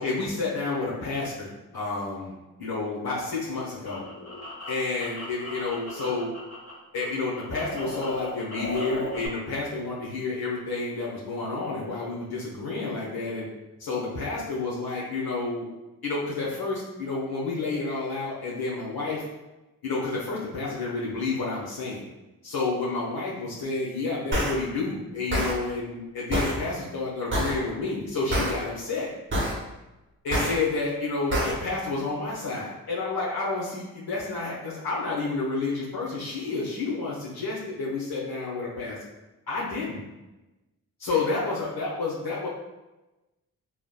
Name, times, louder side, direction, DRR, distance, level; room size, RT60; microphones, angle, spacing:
voice 1, 0.0-2.3 2.6-4.0 4.7-6.3 6.9-13.5 13.8-15.7 16.0-19.2 19.8-22.0 22.4-29.1 30.2-39.0 39.5-40.0 41.0-42.5, left 3 dB, 60° left, -6 dB, 1.1 m, -30 dB
sound 1, 3.3-6.7 7.0-9.3, left 1 dB, 40° left, 1.5 m, -37 dB
sound 2, 24.3-24.5 25.3-25.5 26.3-26.5 27.3-27.5 28.3-28.5 29.3-29.5 30.3-30.5 31.3-31.5, right 1 dB, 30° right, 0.9 m, -25 dB
3.4 x 2.2 x 2.2 m, 1.0 s
supercardioid pair, 40°, 42 cm